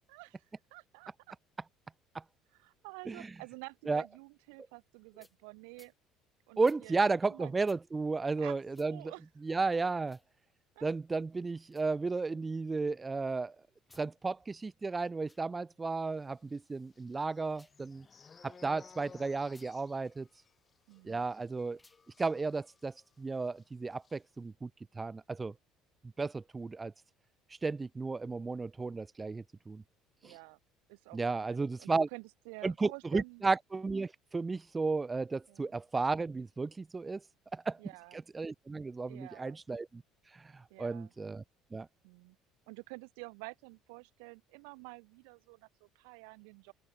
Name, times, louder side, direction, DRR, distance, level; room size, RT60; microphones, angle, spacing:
voice 1, 0.1-0.4 0.7-1.3 2.5-5.9 6.5-7.6 8.4-9.2 10.8-11.2 20.9-21.2 30.2-30.6 30.9-33.5 35.5-35.7 37.8-38.2 39.1-39.6 40.7-41.1 42.0-42.4 42.7-46.7, right 37 dB, 85° right, 2.7 m, -50 dB
sound 1, 5.2-5.4 5.7-6.0 6.6-6.8 7.6-7.8 8.7-8.9 10.0-10.3 11.6-11.9 13.8-14.1 15.1-15.4 17.4-17.8 19.4-19.7 21.7-22.0, left 2 dB, 10° left, 4.4 m, -63 dB
voice 2, 6.6-9.1 9.4-10.2 10.8-13.6 13.9-18.1 18.4-20.3 21.1-21.8 22.2-24.7 25.0-25.5 26.2-26.9 27.6-29.8 30.2-30.3 31.1-32.1 32.6-37.2 37.5-37.8 38.1-40.0 40.5-41.4 41.7-41.9, right 3 dB, 20° right, 0.5 m, -33 dB
sound 2, 16.5-23.2 23.5-23.6 23.9-24.2, left 5 dB, 30° left, 5.7 m, -58 dB
supercardioid pair, 95°, 0 cm